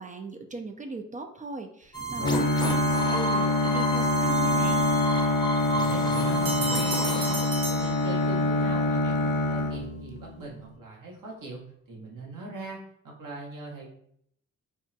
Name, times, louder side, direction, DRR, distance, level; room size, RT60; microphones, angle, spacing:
voice 1, 0.0-2.8 3.0-4.9, right 3 dB, 25° right, 5 dB, 0.4 m, -38 dB
sound 1, 1.9-7.5, right 2 dB, 10° left, 0.6 m, -31 dB
Bowed string instrument, 2.2-10.4, left 2 dB, 65° left, 0.6 m, -26 dB
voice 2, 5.7-7.4 7.7-11.6 11.9-13.9, right 3 dB, 70° right, -1 dB, 1.1 m, -40 dB
Bell, 6.4-8.7, right 2 dB, 90° right, 0.8 m, -34 dB
3.6 x 2.1 x 2.7 m, 0.67 s
supercardioid pair, 50°, 34 cm